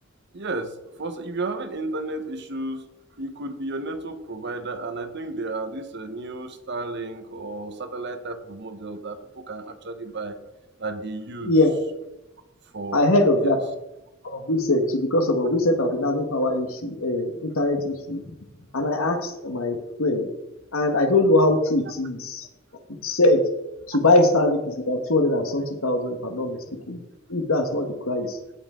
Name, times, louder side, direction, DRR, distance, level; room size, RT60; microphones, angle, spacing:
voice 1, 0.3-2.9 3.2-10.4 10.8-11.5 12.7-13.0 13.3-13.5, right 2 dB, 55° right, 8 dB, 1.1 m, -33 dB
voice 2, 11.4-11.7 12.9-13.6 14.2-18.2 18.7-20.3 20.7-22.5 23.0-23.4 23.9-26.6 26.9-27.0 27.3-28.4, left 2 dB, 85° left, 5 dB, 1.4 m, -22 dB
16.0 x 5.5 x 3.8 m, 0.95 s
head